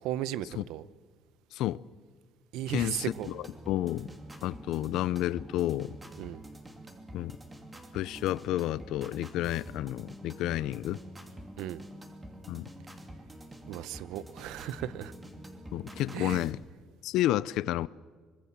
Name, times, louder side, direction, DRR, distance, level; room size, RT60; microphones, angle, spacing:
voice 1, 0.0-0.9 2.5-3.3 6.2-6.4 11.6-11.8 13.7-15.1 16.1-16.4, right 12 dB, 85° right, 0.8 m, -36 dB
voice 2, 1.5-1.8 2.7-4.1 4.4-6.0 7.1-7.4 7.9-11.0 12.5-12.7 15.7-16.6 17.0-17.9, left 14 dB, 75° left, 0.6 m, -31 dB
sound 1, 2.8-16.5, right 1 dB, 15° right, 2.6 m, -47 dB
24.5 x 21.5 x 7.4 m
cardioid pair, 135°, 0 cm